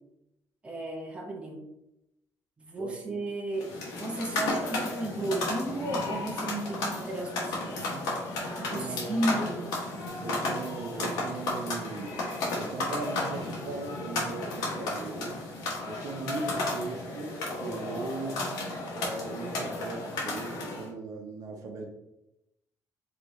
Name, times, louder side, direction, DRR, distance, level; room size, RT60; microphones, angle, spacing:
voice 1, 0.6-1.6 2.6-8.1 8.5-9.7 14.4-14.6, right 1 dB, 15° right, -1 dB, 0.8 m, -34 dB
voice 2, 2.8-3.2 8.7-9.6 10.2-12.2 12.6-15.4 15.9-18.5 18.9-21.9, right 3 dB, 60° right, 2 dB, 0.8 m, -39 dB
sound 1, 3.6-20.9, left 2 dB, 90° left, 1.4 m, -33 dB
4.8 x 3.0 x 3.6 m, 0.90 s
cardioid pair, 150°, 7 cm